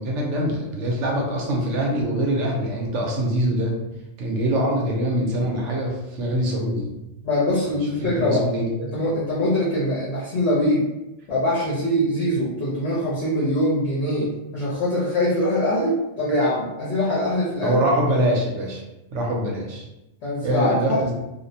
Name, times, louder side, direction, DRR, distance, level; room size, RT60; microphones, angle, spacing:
voice 1, 0.0-3.7 4.2-6.9 8.0-8.6 17.6-18.8 19.1-19.9 20.4-21.1, right 1 dB, 70° right, -1 dB, 0.9 m, -24 dB
voice 2, 7.2-8.5 8.9-10.9 11.3-17.8 20.2-21.0, left 1 dB, 65° left, -7 dB, 1.0 m, -23 dB
2.5 x 2.1 x 2.6 m, 0.95 s
omnidirectional pair, 1.4 m